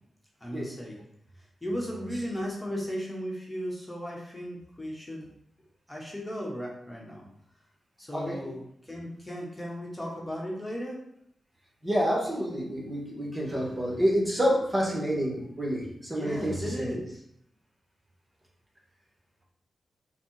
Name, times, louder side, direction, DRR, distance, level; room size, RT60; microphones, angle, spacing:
voice 1, 0.4-1.0 1.6-5.3 5.9-7.3 8.0-11.0 16.1-17.2, equal, 15° left, -2 dB, 1.3 m, -36 dB
voice 2, 8.1-8.4 11.8-16.9, equal, 25° right, -3 dB, 1.5 m, -28 dB
4.1 x 2.3 x 4.7 m, 0.72 s
supercardioid pair, 45°, 0 cm